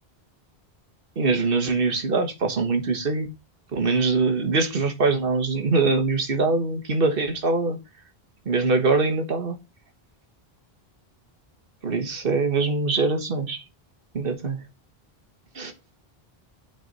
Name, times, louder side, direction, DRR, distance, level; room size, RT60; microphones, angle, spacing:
voice 1, 1.1-3.3 3.7-7.8 8.4-9.6 11.8-13.6 14.1-14.6 15.5-15.7, right 3 dB, 60° right, 1.7 m, -23 dB
9.2 x 5.1 x 5.4 m
omnidirectional pair, 1.0 m